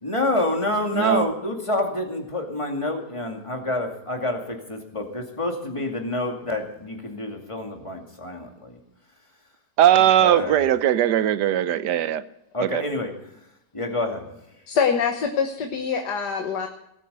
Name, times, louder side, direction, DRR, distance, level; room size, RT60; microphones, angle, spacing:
voice 1, 0.0-8.8 10.0-10.7 12.5-13.1 13.7-14.3, left 1 dB, 20° left, 3 dB, 2.4 m, -28 dB
voice 2, 0.9-1.3 9.8-12.2 12.6-12.8, right 11 dB, 90° right, 15 dB, 1.4 m, -19 dB
voice 3, 14.7-16.7, left 6 dB, 80° left, 4 dB, 1.8 m, -24 dB
18.5 x 9.0 x 6.8 m, 0.82 s
omnidirectional pair, 1.8 m